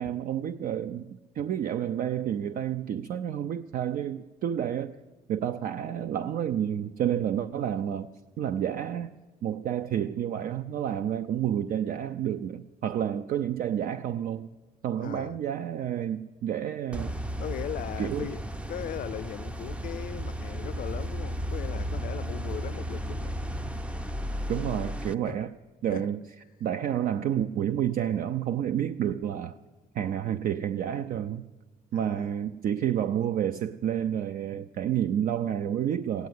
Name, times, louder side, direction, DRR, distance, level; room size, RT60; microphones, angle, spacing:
voice 1, 0.0-4.9 5.3-8.1 8.4-9.2 9.4-14.5 14.8-17.1 18.0-18.3 24.5-25.5 25.8-26.2 26.6-29.6 29.9-31.4 31.9-36.3, right 10 dB, 55° right, 11 dB, 0.5 m, -29 dB
voice 2, 15.0-15.4 17.4-23.4 25.2-25.4 25.9-26.1 31.9-32.4, left 11 dB, 55° left, 14 dB, 0.5 m, -39 dB
sound 1, 16.9-25.1, equal, 5° right, 0.5 m, -34 dB
15.5 x 9.4 x 9.5 m, 1.3 s
cardioid pair, 110°, 17 cm